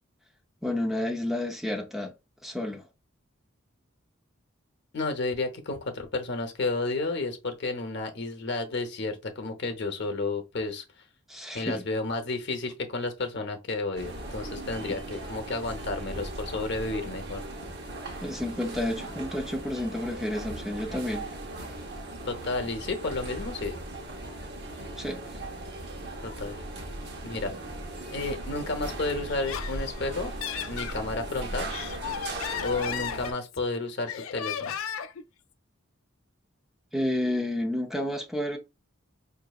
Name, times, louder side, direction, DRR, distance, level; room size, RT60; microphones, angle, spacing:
voice 1, 0.6-2.1 2.4-2.9 11.3-11.9 14.8-15.0 18.2-21.3 25.0-25.2 36.9-38.6, left 1 dB, ahead, 0.5 m, -30 dB
voice 2, 4.9-10.8 11.5-17.4 22.2-23.8 26.2-26.6 27.2-27.5 28.1-30.3 30.7-31.7 32.6-34.7, left 3 dB, 60° left, 0.8 m, -31 dB
sound 1, 14.0-33.3, right 1 dB, 55° right, 0.9 m, -38 dB
Laughter, 29.3-31.0 31.5-33.7 34.1-35.2, left 8 dB, 85° left, 0.4 m, -35 dB
5.2 x 2.6 x 2.3 m
head